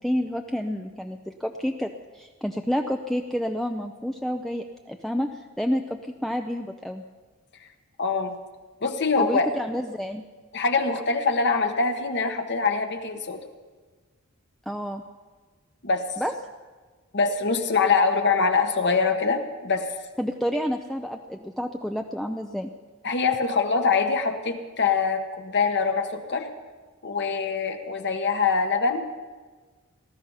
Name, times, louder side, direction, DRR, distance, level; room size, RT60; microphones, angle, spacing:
voice 1, 0.0-7.0 9.2-10.2 14.7-15.0 16.2-16.3 20.2-22.7, equal, ahead, 4 dB, 0.5 m, -29 dB
voice 2, 8.0-8.3 8.8-9.5 10.5-13.4 15.8-16.1 17.1-19.9 23.0-26.5 27.0-29.0, left 4 dB, 55° left, 6 dB, 1.3 m, -24 dB
19.0 x 13.5 x 5.6 m, 1.4 s
head